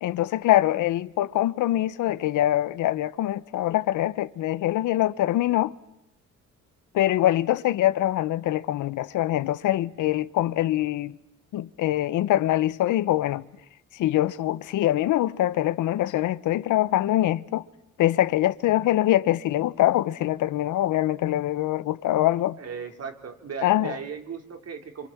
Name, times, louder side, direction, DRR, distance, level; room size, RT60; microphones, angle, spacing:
voice 1, 0.0-5.7 6.9-11.2 11.5-13.4 13.9-17.6 18.0-22.6 23.6-24.0, left 14 dB, 80° left, 1.0 m, -24 dB
voice 2, 22.6-25.1, right 6 dB, 55° right, 3.4 m, -37 dB
27.5 x 26.0 x 7.3 m
cardioid pair, 90°, 30 cm